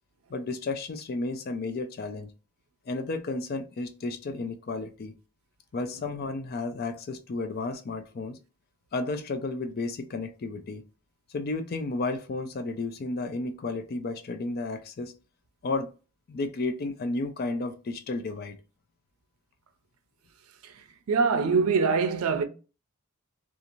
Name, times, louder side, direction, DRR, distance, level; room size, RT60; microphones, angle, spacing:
voice 1, 0.3-2.3 2.9-5.1 5.7-8.4 8.9-10.8 11.3-15.1 15.6-15.9 16.3-18.5, left 3 dB, 45° left, 0.4 m, -32 dB
voice 2, 20.6-22.4, right 5 dB, 75° right, 0.5 m, -24 dB
2.6 x 2.4 x 2.9 m
head